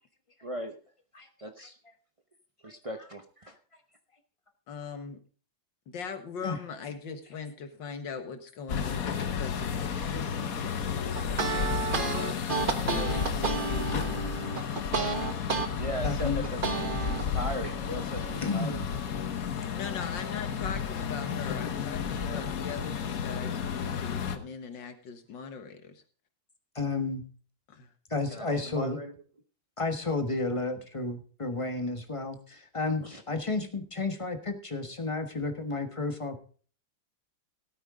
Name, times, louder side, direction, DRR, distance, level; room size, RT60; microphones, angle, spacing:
voice 1, 0.4-0.8 1.4-1.7 2.6-3.5 15.8-18.8 22.3-22.4 28.3-29.1 33.0-33.2, equal, 50° right, 5 dB, 0.3 m, -38 dB
voice 2, 4.7-5.2 5.9-11.8 12.6-14.3 19.7-26.0 27.7-27.9, left 6 dB, 70° left, 8 dB, 2.1 m, -40 dB
sound 1, 8.7-24.4, left 7 dB, 50° left, 1.3 m, -32 dB
sound 2, 11.1-15.7 16.1-17.2, right 4 dB, 35° right, 1.0 m, -31 dB
voice 3, 16.0-16.5 18.2-18.9 26.7-27.2 28.1-29.0 29.8-36.4, left 3 dB, 20° left, 6 dB, 1.1 m, -32 dB
17.0 x 9.0 x 3.7 m, 0.42 s
omnidirectional pair, 2.1 m